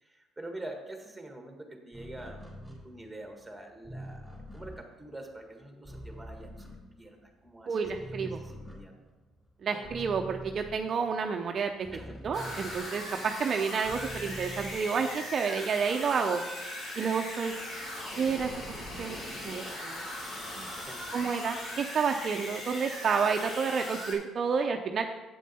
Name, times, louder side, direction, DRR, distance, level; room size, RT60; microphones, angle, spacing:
voice 1, 0.0-2.5 2.8-6.7 7.0-7.8 8.2-8.9 9.7-9.9 11.9-12.2 20.9-21.0, right 1 dB, 5° right, 3 dB, 1.5 m, -45 dB
sound 1, 1.9-7.5 7.8-13.2 13.6-15.4, equal, 10° left, 3.4 m, -45 dB
voice 2, 7.7-8.4 9.6-11.7 12.2-16.4 17.0-17.5 18.2-18.5 19.0-19.2 19.4-20.0 20.6-20.7 21.1-25.0, right 6 dB, 45° right, 4 dB, 0.6 m, -30 dB
sound 2, 12.3-24.1, left 1 dB, 45° left, 3.2 m, -39 dB
8.5 x 7.4 x 4.2 m, 1.1 s
cardioid pair, 100°, 0 cm